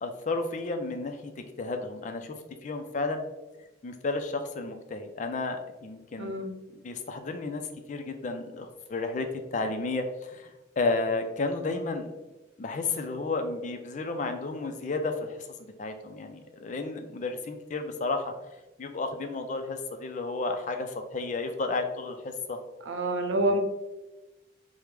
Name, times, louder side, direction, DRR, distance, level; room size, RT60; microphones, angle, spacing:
voice 1, 0.0-2.4 2.6-3.2 3.8-6.3 6.7-7.6 7.9-10.5 10.8-12.1 12.6-18.3 18.8-22.6, left 3 dB, 40° left, 6 dB, 0.4 m, -32 dB
voice 2, 6.2-6.5 22.9-23.6, right 1 dB, 80° right, 5 dB, 0.6 m, -27 dB
4.7 x 2.1 x 3.3 m, 1.0 s
head